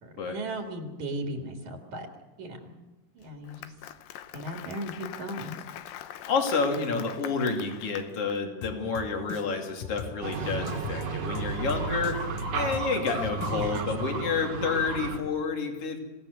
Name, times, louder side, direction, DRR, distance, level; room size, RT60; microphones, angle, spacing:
voice 1, 0.0-2.1 2.4-2.7 3.2-3.7 4.3-5.6 6.8-7.2 13.4-13.9, right 1 dB, 65° right, 3 dB, 3.4 m, -37 dB
Applause, 3.2-8.4, left 11 dB, 85° left, 2.7 m, -43 dB
voice 2, 6.3-16.0, left 4 dB, 45° left, 3 dB, 3.6 m, -29 dB
Drum kit, 8.6-14.1, left 9 dB, 70° left, 2.4 m, -41 dB
sound 1, 10.2-15.2, right 4 dB, 85° right, 3.8 m, -33 dB
26.5 x 17.0 x 6.7 m, 1.1 s
omnidirectional pair, 3.9 m